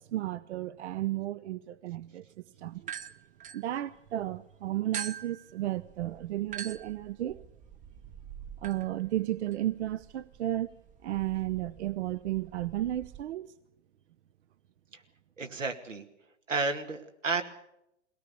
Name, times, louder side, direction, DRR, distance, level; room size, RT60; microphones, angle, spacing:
voice 1, 0.0-2.2 2.6-2.9 3.5-7.4 8.6-10.7 11.0-13.5, right 14 dB, 65° right, 15 dB, 0.7 m, -33 dB
sound 1, 2.8-4.3 4.9-13.2, right 8 dB, 20° right, 0.8 m, -45 dB
voice 2, 15.4-16.0 16.5-17.4, right 4 dB, 90° right, 5 dB, 2.3 m, -31 dB
21.5 x 18.0 x 6.8 m, 0.82 s
hypercardioid pair, 110°, 37 cm